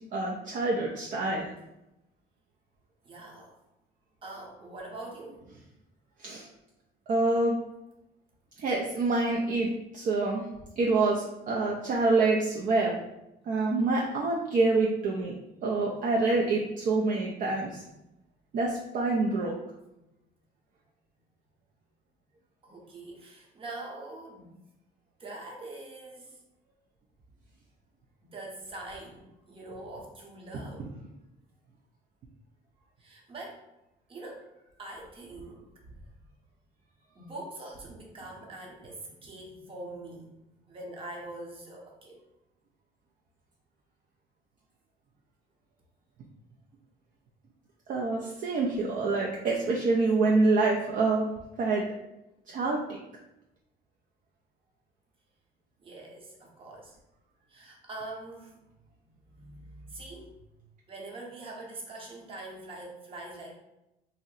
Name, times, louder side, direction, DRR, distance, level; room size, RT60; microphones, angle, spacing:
voice 1, 0.1-1.5 6.2-6.5 7.1-7.6 8.6-10.4 10.8-13.0 13.4-15.3 15.6-17.8 18.5-19.6 47.9-51.3 51.6-51.8 52.5-52.8, right 3 dB, 50° right, -2 dB, 0.4 m, -26 dB
voice 2, 3.0-3.5 4.2-5.5 22.6-24.5 25.2-26.4 28.2-30.9 33.0-33.6 34.1-34.5 34.8-35.6 37.1-40.3 40.7-42.2 55.8-57.0 57.5-58.6 59.3-60.3 60.9-63.6, right 2 dB, 30° right, -1 dB, 0.8 m, -43 dB
2.6 x 2.0 x 3.9 m, 0.91 s
cardioid pair, 110°, 17 cm